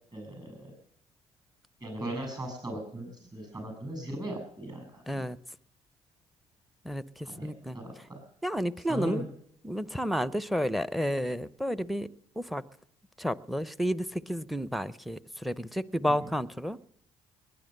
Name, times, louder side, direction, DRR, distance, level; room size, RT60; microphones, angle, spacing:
voice 1, 0.1-0.7 1.8-5.2 7.3-8.2 8.9-9.3, right 1 dB, 30° right, 4 dB, 7.6 m, -38 dB
voice 2, 5.1-5.4 6.8-8.0 8.4-9.3 9.6-12.1 12.4-12.6 13.2-16.8, equal, ahead, 18 dB, 0.7 m, -31 dB
20.5 x 10.0 x 6.7 m, 0.68 s
supercardioid pair, 65°, 14 cm